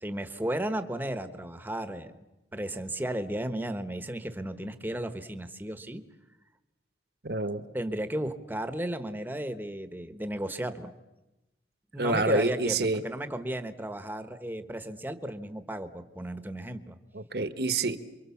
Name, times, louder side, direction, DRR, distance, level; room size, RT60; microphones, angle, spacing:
voice 1, 0.0-2.3 2.5-6.0 7.7-10.9 11.9-17.0, right 1 dB, 10° right, 9 dB, 1.2 m, -34 dB
voice 2, 7.2-7.6 12.0-13.0 17.1-18.0, right 3 dB, 65° right, 12 dB, 1.4 m, -27 dB
28.0 x 24.0 x 7.2 m, 1.0 s
head